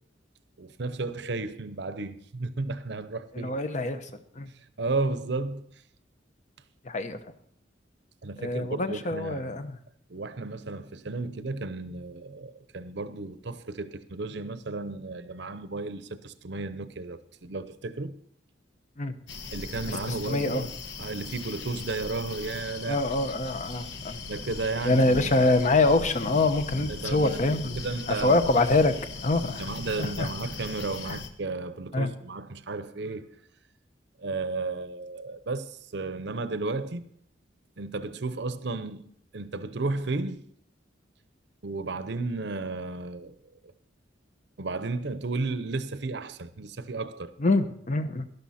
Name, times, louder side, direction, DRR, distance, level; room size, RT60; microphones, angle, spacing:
voice 1, 0.6-3.6 4.8-5.7 8.2-9.6 10.1-18.1 19.5-20.7 21.0-23.0 24.3-25.5 26.8-28.6 29.5-33.3 34.2-37.1 37.8-39.1 39.3-40.4 41.6-43.3 44.6-47.3, right 3 dB, 60° right, 0.8 m, -33 dB
voice 2, 3.3-4.0 4.4-4.5 6.9-7.2 8.4-9.8 19.0-19.1 20.3-20.7 22.9-24.2 24.8-27.7 28.1-28.9 29.2-29.6 30.0-30.3 31.9-32.1 47.4-48.2, left 2 dB, 40° left, 0.9 m, -25 dB
sound 1, 19.3-31.3, left 4 dB, 70° left, 1.2 m, -39 dB
12.0 x 12.0 x 4.2 m
head